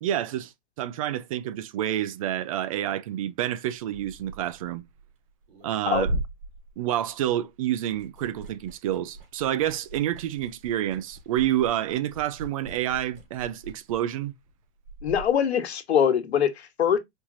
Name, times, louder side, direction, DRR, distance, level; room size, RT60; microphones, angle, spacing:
voice 1, 0.0-0.5 0.8-4.8 5.6-6.1 6.8-14.3, right 12 dB, 35° right, 0.4 m, -28 dB
Liquid, 3.8-7.5 7.8-15.3, right 1 dB, 55° right, 2.6 m, -39 dB
voice 2, 15.0-17.0, left 8 dB, 75° left, 1.4 m, -23 dB
4.6 x 2.9 x 3.8 m
hypercardioid pair, 155°, 32 cm